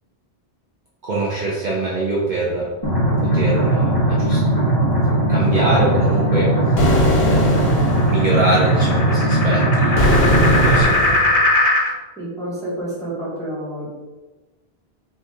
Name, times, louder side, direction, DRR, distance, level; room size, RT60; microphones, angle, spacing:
voice 1, 1.0-2.7 3.2-4.4 5.3-6.6 7.2-7.8 8.0-10.3 10.6-11.3, right 2 dB, 50° right, -5 dB, 0.8 m, -23 dB
sound 1, 2.8-10.8, right 1 dB, 25° left, 0.8 m, -18 dB
sound 2, 5.2-11.9, left 2 dB, 50° left, 0.5 m, -22 dB
sound 3, 6.8-8.2 10.0-11.4, left 1 dB, 70° left, 1.0 m, -20 dB
voice 2, 12.2-14.0, right 1 dB, 5° left, -9 dB, 1.3 m, -29 dB
3.9 x 2.7 x 3.6 m, 1.2 s
omnidirectional pair, 1.1 m